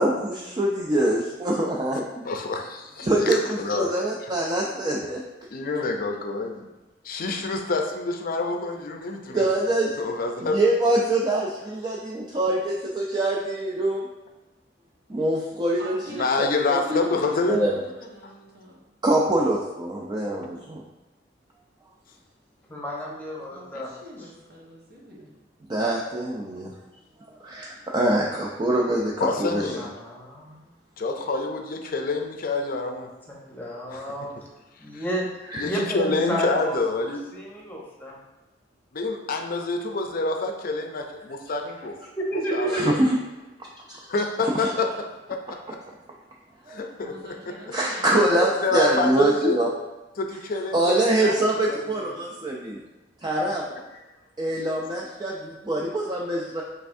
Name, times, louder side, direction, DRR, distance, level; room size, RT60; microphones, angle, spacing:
voice 1, 0.0-2.1 3.0-5.2 9.3-10.0 10.4-14.0 15.1-17.0 17.5-17.7 19.0-20.8 25.7-26.7 27.4-29.6 35.5-35.6 42.7-43.2 43.9-44.0 44.5-44.6 46.7-46.8 47.7-49.7 50.7-52.8 53.2-53.6 54.4-56.6, right 1 dB, 25° right, -2 dB, 0.4 m, -24 dB
voice 2, 2.2-4.0 5.5-6.7 7.0-9.5 10.0-10.6 16.1-17.6 29.2-29.9 31.0-33.1 33.9-34.1 34.9-35.0 35.5-37.2 38.9-42.0 42.3-43.0 44.1-45.8 46.7-47.5 48.1-49.6 50.2-51.9, left 3 dB, 50° left, 4 dB, 0.5 m, -27 dB
voice 3, 15.8-18.9 23.5-25.4 47.0-48.7, equal, 60° right, -3 dB, 1.1 m, -44 dB
voice 4, 22.7-23.9 29.8-30.6 33.3-34.3 34.8-35.2 35.6-38.1 42.2-42.9, right 1 dB, 10° left, -3 dB, 0.9 m, -31 dB
5.5 x 3.4 x 2.6 m, 1.1 s
head